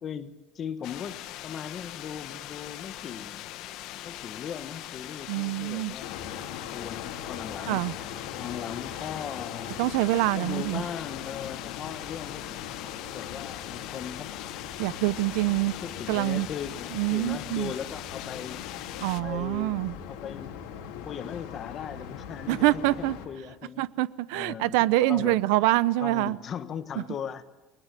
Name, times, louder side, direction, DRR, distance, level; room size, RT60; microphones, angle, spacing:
voice 1, 0.0-3.5 4.0-6.2 6.7-7.9 8.4-9.8 10.3-12.4 13.1-14.3 15.8-18.6 19.2-19.8 20.1-20.6 21.0-23.8 24.3-24.8 25.1-25.4 26.0-27.4, left 8 dB, 30° left, 1.4 m, -38 dB
sound 1, 0.8-19.2, left 14 dB, 50° left, 1.2 m, -41 dB
voice 2, 5.3-5.9 7.7-7.9 9.8-10.8 14.8-15.7 16.1-16.5 16.9-17.7 19.0-20.0 22.5-23.2 23.8-26.4, right 18 dB, 75° right, 0.8 m, -25 dB
sound 2, 6.0-23.2, left 8 dB, 70° left, 4.4 m, -40 dB
29.5 x 22.5 x 7.6 m
cardioid pair, 165°, 0 cm